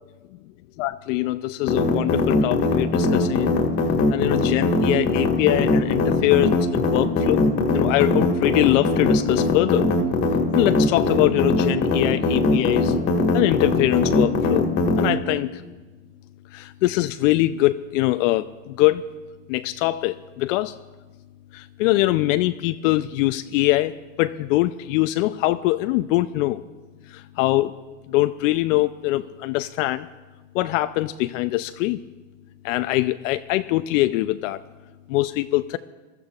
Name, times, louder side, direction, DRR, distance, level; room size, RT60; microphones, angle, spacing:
voice 1, 0.8-3.6 4.1-7.5 7.7-9.9 10.5-12.9 13.3-14.7 15.0-15.6 16.5-19.1 19.5-20.8 21.5-26.6 27.1-27.7 28.1-30.1 30.5-32.0 32.6-34.6 35.1-35.8, left 17 dB, 75° left, 11 dB, 0.5 m, -23 dB
sound 1, 1.7-15.1, left 3 dB, 35° left, 1.6 m, -20 dB
22.0 x 13.0 x 2.4 m, 1.2 s
supercardioid pair, 120°, 38 cm